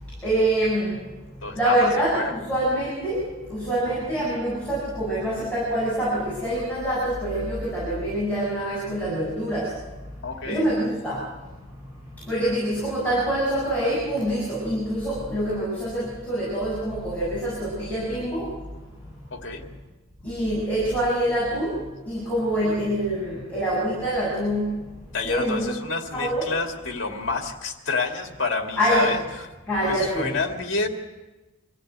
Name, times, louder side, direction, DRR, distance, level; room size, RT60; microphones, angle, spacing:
voice 1, 0.2-1.0 1.5-9.8 10.4-11.3 12.2-18.6 20.2-24.8 25.2-25.7 26.1-26.5 28.8-29.1 29.7-30.3, right 1 dB, 5° left, -9 dB, 7.2 m, -25 dB
voice 2, 1.4-2.3 10.2-10.6 19.3-19.6 25.1-29.5 29.8-30.9, left 3 dB, 60° left, 3 dB, 2.3 m, -29 dB
25.0 x 15.5 x 8.0 m, 1.1 s
head